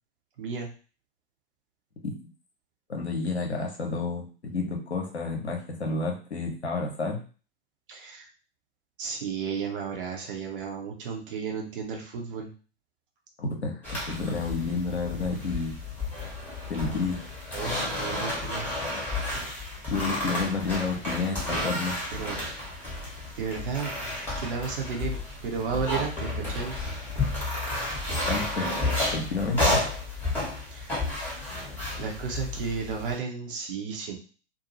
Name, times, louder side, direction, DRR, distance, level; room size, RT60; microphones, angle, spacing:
voice 1, 0.4-0.7 7.9-8.3 9.0-12.5 17.5-18.8 22.1-22.4 22.7-22.9 23.4-23.9 24.4-26.8 30.7-31.4 32.0-34.2, right 6 dB, 55° right, 1 dB, 0.9 m, -33 dB
voice 2, 2.9-7.2 13.4-13.8 14.1-15.8 16.7-17.2 19.9-22.0 28.3-28.8 29.1-29.8, left 3 dB, 80° left, 1 dB, 0.8 m, -30 dB
sound 1, 13.8-33.1, left 2 dB, 5° left, 1.1 m, -31 dB
2.7 x 2.2 x 3.0 m, 0.37 s
figure-of-eight pair, 95°, 32 cm